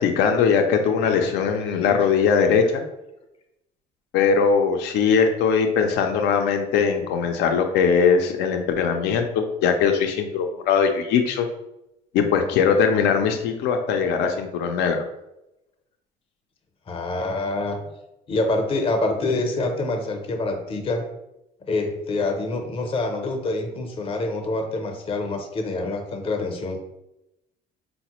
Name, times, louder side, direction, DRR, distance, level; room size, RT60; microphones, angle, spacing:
voice 1, 0.0-2.8 4.1-11.5 12.1-15.0, left 6 dB, 90° left, 5 dB, 0.4 m, -20 dB
voice 2, 1.1-2.3 16.9-17.8 18.3-21.1 21.7-26.8, left 2 dB, 35° left, 4 dB, 0.6 m, -26 dB
4.0 x 2.1 x 2.9 m, 0.88 s
cardioid pair, 110°, 17 cm